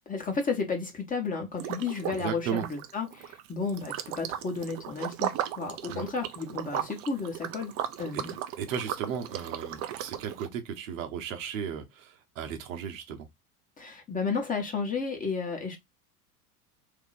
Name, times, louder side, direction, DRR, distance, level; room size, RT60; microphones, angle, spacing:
voice 1, 0.1-7.7 8.0-8.4 13.8-15.8, left 4 dB, 15° left, 1.1 m, -32 dB
Liquid, 1.6-2.2 2.5-10.5, right 11 dB, 35° right, 0.5 m, -36 dB
voice 2, 2.2-2.7 5.9-6.1 8.1-8.2 8.6-13.3, right 8 dB, 60° right, 1.0 m, -35 dB
3.0 x 2.8 x 4.0 m
figure-of-eight pair, 85°, 46 cm